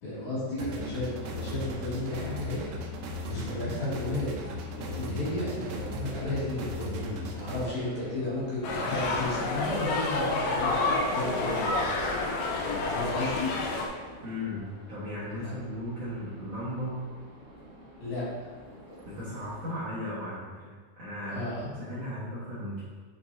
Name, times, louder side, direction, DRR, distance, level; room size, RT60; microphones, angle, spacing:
voice 1, 0.0-2.6 3.2-11.8 12.7-13.5 15.3-15.5 18.0-18.5 21.3-21.6, left 2 dB, 50° left, -10 dB, 3.3 m, -33 dB
sound 1, 0.6-7.6, left 1 dB, 75° right, 2.4 m, -37 dB
sound 2, 1.4-19.8, equal, 35° right, 1.0 m, -49 dB
voice 2, 3.3-3.6 14.2-17.1 19.1-22.8, left 1 dB, 60° right, -11 dB, 1.9 m, -36 dB
sound 3, 8.6-13.9, left 2 dB, 80° left, 2.6 m, -29 dB
9.1 x 5.2 x 2.7 m, 1.4 s
omnidirectional pair, 4.5 m